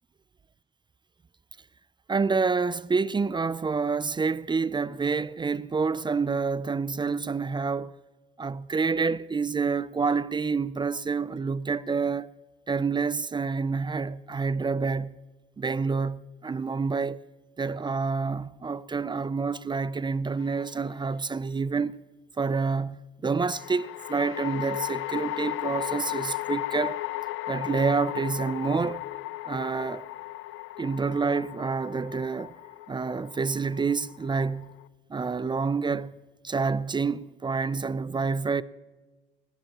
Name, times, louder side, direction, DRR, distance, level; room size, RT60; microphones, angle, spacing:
voice 1, 2.1-7.9 8.4-12.3 12.7-15.2 15.6-17.2 17.6-22.0 22.4-27.0 27.5-29.0 29.5-30.1 30.8-32.5 32.9-34.8 35.1-36.2 36.4-38.6, right 4 dB, 25° right, 0.4 m, -28 dB
sound 1, 20.4-21.1 23.5-34.9, left 17 dB, 85° left, 0.4 m, -35 dB
19.5 x 17.5 x 2.9 m
cardioid pair, 90°, 20 cm